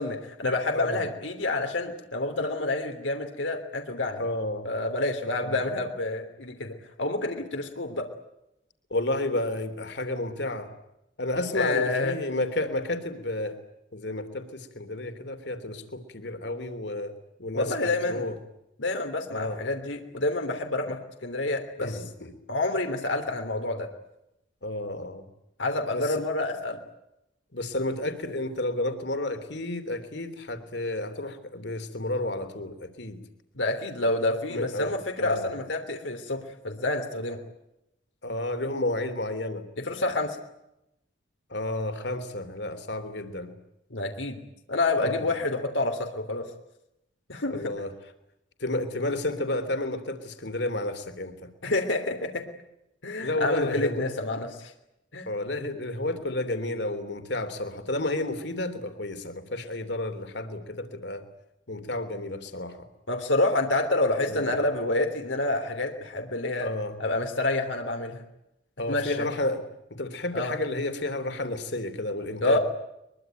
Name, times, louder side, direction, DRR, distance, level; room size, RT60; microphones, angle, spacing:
voice 1, 0.0-4.2 4.6-8.1 11.5-12.2 17.5-18.3 18.8-22.0 22.5-23.9 25.6-26.8 33.5-37.4 39.8-40.4 43.9-44.4 44.7-46.4 47.3-47.7 51.6-52.4 53.0-54.7 55.1-55.3 63.1-66.7 67.0-68.2 68.9-69.3 70.3-70.5 72.4-72.6, left 2 dB, 85° left, 5 dB, 3.2 m, -28 dB
voice 2, 4.2-4.7 5.4-5.7 8.9-10.7 11.2-13.6 13.9-17.1 17.4-18.4 19.3-19.6 21.8-22.3 24.6-25.2 25.9-26.1 27.5-33.2 34.5-34.9 35.2-35.5 38.2-39.6 41.5-43.5 45.0-45.3 47.5-47.9 48.6-51.5 53.2-54.1 55.3-61.2 61.7-62.9 64.3-64.6 66.6-67.0 68.8-69.6 69.9-72.6, left 1 dB, 65° left, 9 dB, 3.3 m, -31 dB
23.5 x 23.0 x 9.2 m, 0.86 s
head